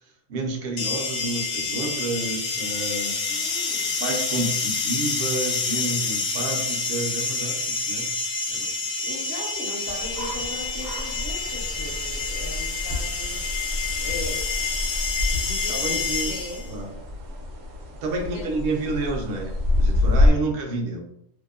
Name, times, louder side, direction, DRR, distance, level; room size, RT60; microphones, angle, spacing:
voice 1, 0.3-3.5 4.0-8.1 8.5-8.7 15.7-16.3 16.7-16.9 18.0-21.0, right 2 dB, 60° right, 2 dB, 0.6 m, -30 dB
sound 1, 0.8-16.7, left 4 dB, 90° left, 1.0 m, -28 dB
voice 2, 2.9-4.0 9.0-14.4 15.4-16.7 18.1-18.7, left 2 dB, 60° left, 0 dB, 0.7 m, -39 dB
sound 2, 9.9-20.3, left 2 dB, 80° right, 1.0 m, -27 dB
2.8 x 2.0 x 2.3 m, 0.75 s
omnidirectional pair, 1.4 m